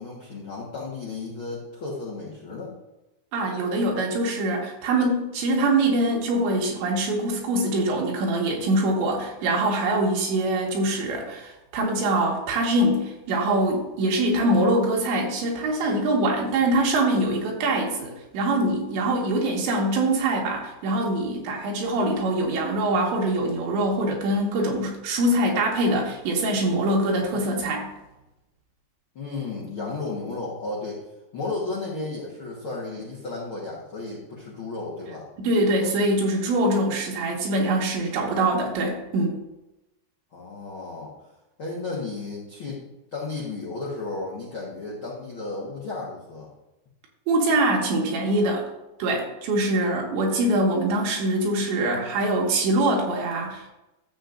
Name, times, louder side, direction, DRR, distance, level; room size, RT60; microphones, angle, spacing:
voice 1, 0.0-2.7 29.1-31.0 31.3-35.3 40.3-41.1 41.6-46.5, left 3 dB, 85° left, -5 dB, 1.1 m, -33 dB
voice 2, 3.3-27.9 35.4-39.4 47.3-48.7 49.0-53.7, right 1 dB, 90° right, -1 dB, 4.0 m, -23 dB
12.0 x 7.8 x 2.6 m, 0.97 s
omnidirectional pair, 5.0 m